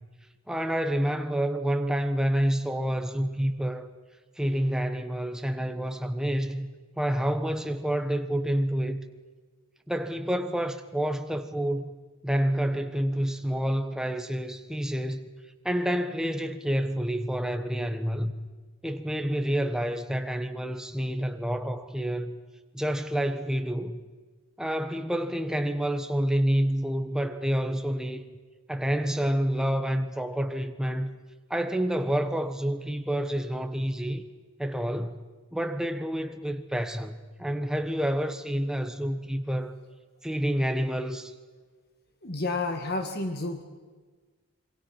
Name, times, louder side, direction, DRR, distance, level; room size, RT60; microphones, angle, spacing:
voice 1, 0.5-3.9 4.4-6.7 7.0-9.0 9.9-11.9 12.2-15.3 15.6-18.3 18.8-22.4 22.7-24.0 24.6-28.2 28.7-31.1 31.5-34.2 34.6-35.2 35.5-39.8 40.2-41.3, equal, 5° right, 1.2 m, -28 dB
voice 2, 42.2-43.6, left 2 dB, 45° left, 1.9 m, -30 dB
27.5 x 23.5 x 6.0 m
head